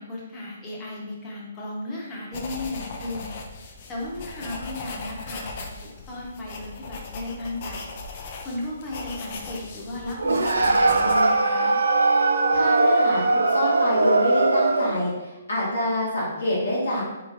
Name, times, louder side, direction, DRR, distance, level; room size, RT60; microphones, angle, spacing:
voice 1, 0.0-3.3 3.9-7.9 8.4-11.8, left 2 dB, 20° left, -4 dB, 1.0 m, -35 dB
sound 1, 2.3-11.2, left 3 dB, 45° left, 0.5 m, -38 dB
sound 2, 10.2-15.1, right 2 dB, 85° right, 0.3 m, -20 dB
voice 2, 12.5-17.0, equal, 85° left, -7 dB, 1.3 m, -26 dB
3.3 x 3.3 x 2.6 m, 1.1 s
hypercardioid pair, 140°, 0 cm